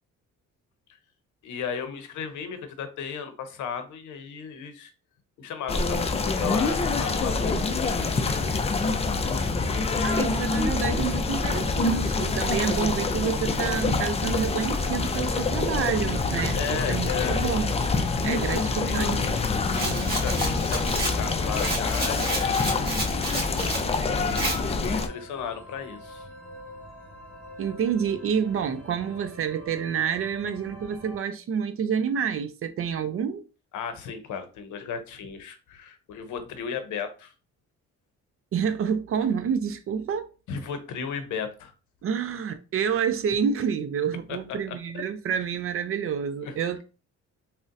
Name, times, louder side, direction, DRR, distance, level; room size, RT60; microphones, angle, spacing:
voice 1, 1.4-4.9 5.4-8.4 16.5-17.4 18.5-19.6 20.1-22.9 24.1-26.3 33.7-37.3 40.5-41.7 44.3-45.0 46.4-46.5, left 7 dB, 75° left, 0.7 m, -35 dB
sound 1, 5.7-25.1, left 3 dB, 20° left, 0.4 m, -26 dB
voice 2, 9.7-17.7 18.2-19.2 27.6-33.4 38.5-40.3 42.0-46.8, right 7 dB, 50° right, 0.4 m, -28 dB
sound 2, 14.3-31.2, right 2 dB, 5° left, 1.1 m, -46 dB
Rattle, 19.7-23.9 24.3-24.6, right 2 dB, 30° right, 1.3 m, -31 dB
3.8 x 2.1 x 2.5 m
cardioid pair, 90°, 30 cm